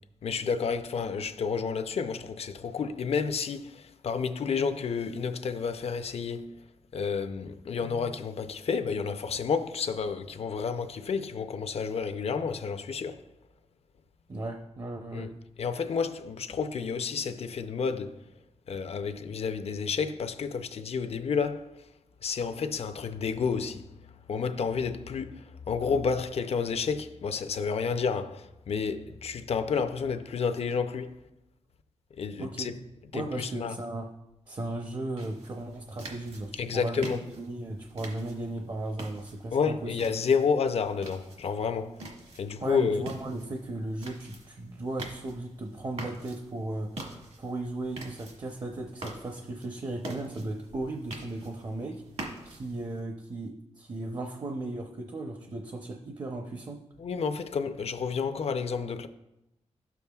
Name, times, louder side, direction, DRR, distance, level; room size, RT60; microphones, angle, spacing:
voice 1, 0.2-6.5 6.9-13.2 15.1-15.3 15.6-18.2 18.7-21.7 22.2-23.9 24.3-31.2 32.2-32.7 33.1-33.8 36.6-37.2 39.5-42.0 42.4-43.1 57.0-59.1, left 5 dB, 60° left, 0.5 m, -30 dB
voice 2, 14.3-15.3 32.4-32.7 33.1-34.1 34.5-39.9 42.6-47.0 47.4-52.0 52.4-56.8, right 2 dB, 40° right, 0.6 m, -36 dB
sound 1, 35.2-53.0, right 1 dB, 65° right, 1.6 m, -45 dB
12.5 x 7.0 x 2.3 m
wide cardioid pair, 130°, 12 cm